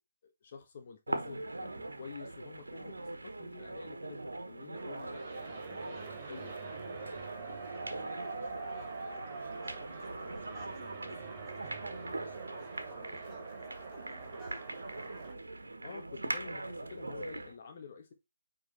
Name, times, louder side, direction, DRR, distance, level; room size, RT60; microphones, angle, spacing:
voice 1, 0.2-6.0 6.3-6.5 6.9-7.2 15.8-18.1, left 5 dB, 40° left, 1.1 m, -49 dB
sound 1, 1.1-17.6, right 2 dB, 85° right, 1.4 m, -42 dB
sound 2, 4.7-15.3, right 4 dB, 35° right, 2.8 m, -44 dB
voice 2, 5.6-6.2 7.3-9.2 9.5-14.6, right 2 dB, 5° right, 2.7 m, -59 dB
9.3 x 4.0 x 4.0 m
figure-of-eight pair, 150°, 0 cm